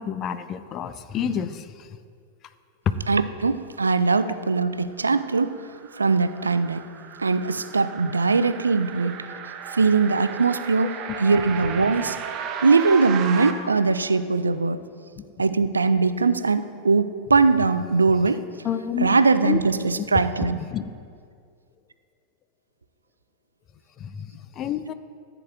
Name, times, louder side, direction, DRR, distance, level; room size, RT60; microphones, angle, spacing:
voice 1, 0.0-1.9 15.2-15.3 18.6-19.1 19.4-19.6 20.5-20.8 24.0-24.9, left 8 dB, 30° left, 11 dB, 0.4 m, -29 dB
voice 2, 3.1-5.6 6.0-6.9 7.2-9.2 9.7-12.2 12.6-14.8 15.4-18.5 19.0-20.6, right 4 dB, 75° right, 13 dB, 0.3 m, -21 dB
sound 1, 5.2-13.5, right 7 dB, 35° right, 0.7 m, -35 dB
14.5 x 7.9 x 2.4 m, 2.3 s
figure-of-eight pair, 90°, 0 cm